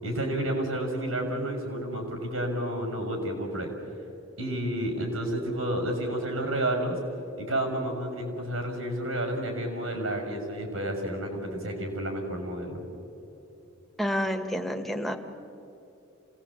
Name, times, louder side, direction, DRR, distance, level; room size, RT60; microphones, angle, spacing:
voice 1, 0.0-3.7 4.4-7.0 7.3-12.9, right 1 dB, 85° right, 4 dB, 6.2 m, -30 dB
voice 2, 14.0-15.2, equal, ahead, 4 dB, 1.4 m, -29 dB
27.0 x 18.5 x 8.6 m, 2.8 s
head